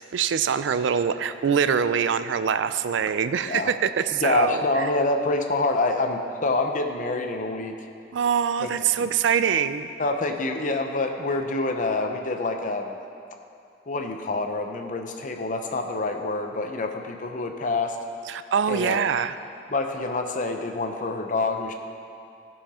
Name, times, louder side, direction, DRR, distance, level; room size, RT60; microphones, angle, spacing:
voice 1, 0.1-4.9 8.1-9.9 18.3-19.3, right 7 dB, 90° right, 12 dB, 0.4 m, -24 dB
voice 2, 4.1-7.8 8.6-8.7 9.0-9.1 10.0-13.0 13.9-18.0 18.7-19.0 19.7-21.7, left 2 dB, 45° left, 5 dB, 0.7 m, -26 dB
15.5 x 5.7 x 4.3 m, 2.5 s
head